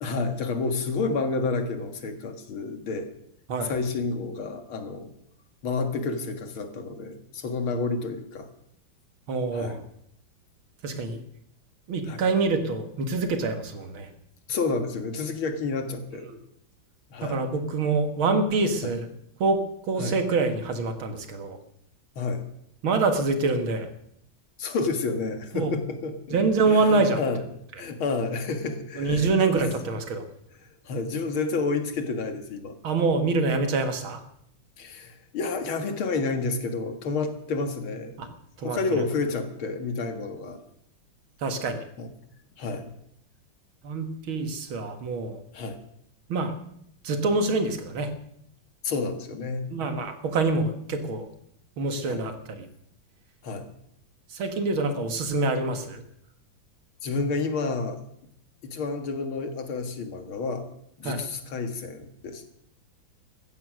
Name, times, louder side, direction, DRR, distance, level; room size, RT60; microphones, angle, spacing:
voice 1, 0.0-3.1 3.6-5.1 5.6-8.5 9.5-9.8 12.1-12.2 14.5-16.3 17.1-17.4 18.8-18.9 20.0-20.2 22.2-22.4 24.6-26.4 26.7-27.4 27.8-29.7 30.9-32.8 34.8-38.3 38.6-40.6 42.0-42.1 42.6-42.9 45.5-45.8 48.8-49.7 52.0-52.2 53.4-53.7 57.0-58.0 58.6-60.7 61.0-62.5, left 4 dB, 90° left, 7 dB, 2.6 m, -30 dB
voice 2, 9.3-9.8 10.8-11.2 11.9-14.1 16.3-16.4 17.2-19.1 19.4-19.6 19.9-21.6 22.8-23.9 25.5-25.7 26.3-27.2 29.0-30.3 32.8-34.2 38.2-38.3 38.6-39.0 41.4-41.8 43.8-45.4 46.3-46.5 47.0-48.1 49.7-51.3 51.8-52.7 54.3-56.0 61.0-61.2, right 3 dB, 85° right, 7 dB, 2.5 m, -25 dB
16.0 x 13.5 x 6.2 m, 0.72 s
omnidirectional pair, 2.2 m